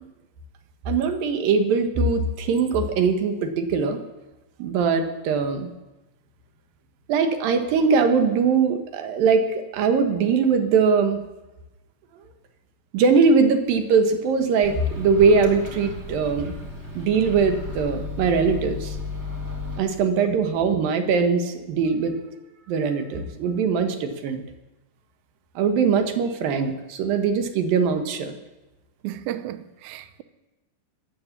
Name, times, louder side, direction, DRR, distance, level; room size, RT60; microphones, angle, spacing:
voice 1, 0.9-4.0 4.6-5.7 7.1-11.2 12.9-16.5 16.9-19.0 19.8-22.2 22.7-24.4 25.6-28.3, right 5 dB, 70° right, 2.9 m, -21 dB
Microwave oven, 14.6-19.8, left 3 dB, 25° right, 1.5 m, -34 dB
voice 2, 29.0-30.2, right 13 dB, 90° right, 1.6 m, -33 dB
17.0 x 9.1 x 7.2 m
omnidirectional pair, 4.4 m